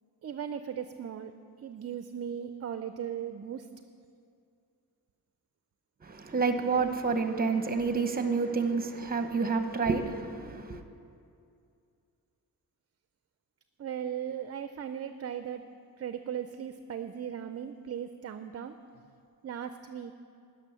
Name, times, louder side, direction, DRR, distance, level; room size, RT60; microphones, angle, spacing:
voice 1, 0.2-1.3 1.6-3.7 13.8-18.8 19.4-20.1, right 8 dB, 40° right, 0.5 m, -37 dB
voice 2, 6.0-10.8, right 4 dB, 25° right, 0.9 m, -29 dB
12.0 x 6.4 x 9.7 m
cardioid pair, 115°, 38 cm